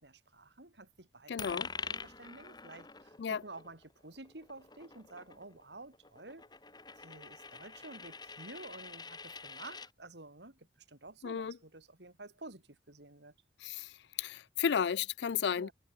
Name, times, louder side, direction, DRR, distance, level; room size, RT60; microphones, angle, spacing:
voice 1, 0.0-6.4 7.0-13.3 15.6-15.7, right 2 dB, 80° right, 4.0 m, -51 dB
voice 2, 1.3-1.7 3.2-3.4 11.2-11.6 13.6-13.9 14.2-15.7, left 7 dB, 75° left, 0.4 m, -33 dB
Coin (dropping), 1.4-9.9, left 4 dB, 25° left, 4.4 m, -46 dB
head